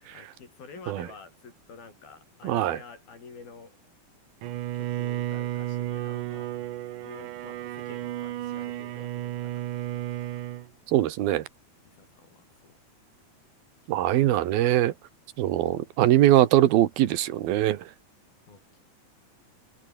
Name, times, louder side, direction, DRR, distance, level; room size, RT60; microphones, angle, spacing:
voice 1, 0.0-3.8 4.7-6.5 7.0-10.4 11.8-12.8 13.9-14.8 18.5-18.8, left 5 dB, 80° left, 8.1 m, -49 dB
voice 2, 2.4-2.8 10.9-11.5 13.9-14.9 15.4-17.8, right 13 dB, 85° right, 3.2 m, -22 dB
Bowed string instrument, 4.4-10.7, right 14 dB, 70° right, 2.5 m, -33 dB
omnidirectional pair, 4.2 m